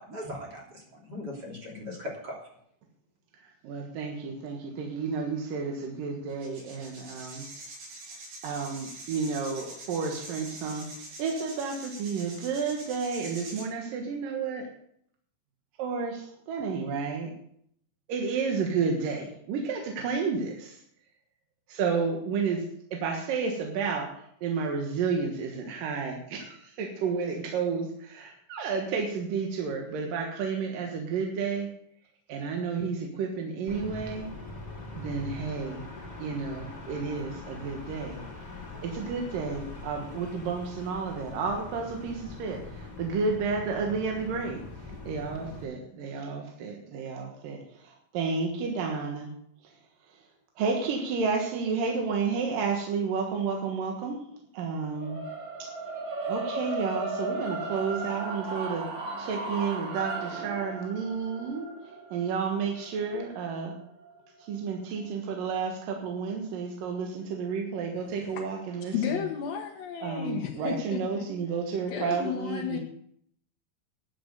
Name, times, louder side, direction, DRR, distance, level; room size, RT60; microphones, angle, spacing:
voice 1, 0.0-2.4, left 1 dB, 25° right, -2 dB, 3.2 m, -39 dB
voice 2, 3.6-7.4 8.4-10.9 11.2-14.7 15.8-17.3 18.1-20.8 21.7-22.6 22.9-24.1 24.4-31.7 32.3-34.3 35.0-35.8 36.2-38.2 38.8-44.6 45.1-49.3 50.6-54.2 54.5-55.2 56.3-58.8 59.2-61.7 62.1-63.7 64.5-69.2 70.0-72.8, right 5 dB, 65° right, 1 dB, 2.5 m, -31 dB
sound 1, 5.4-5.5 6.3-13.6, right 2 dB, 85° right, 6.1 m, -44 dB
sound 2, 33.7-45.6, left 3 dB, 15° left, 1.7 m, -42 dB
sound 3, 55.0-65.2, right 3 dB, 50° right, 2.8 m, -36 dB
voice 3, 68.0-68.4 68.8-71.2 71.9-72.8, left 9 dB, 70° left, 0 dB, 2.3 m, -33 dB
11.0 x 7.8 x 8.0 m, 0.69 s
omnidirectional pair, 5.4 m